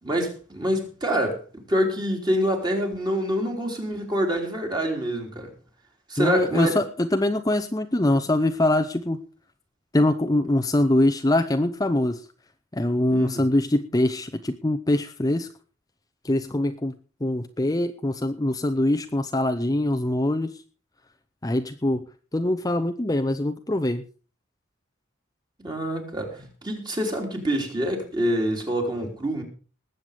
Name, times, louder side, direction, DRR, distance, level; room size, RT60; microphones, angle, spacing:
voice 1, 0.0-5.5 6.1-6.8 13.1-13.4 25.6-29.4, equal, 20° right, 3.5 m, -26 dB
voice 2, 6.2-9.2 9.9-12.3 12.7-15.5 16.2-16.9 17.2-20.6 21.4-22.0 22.3-24.0, left 1 dB, 20° left, 0.7 m, -23 dB
20.0 x 8.0 x 5.1 m
head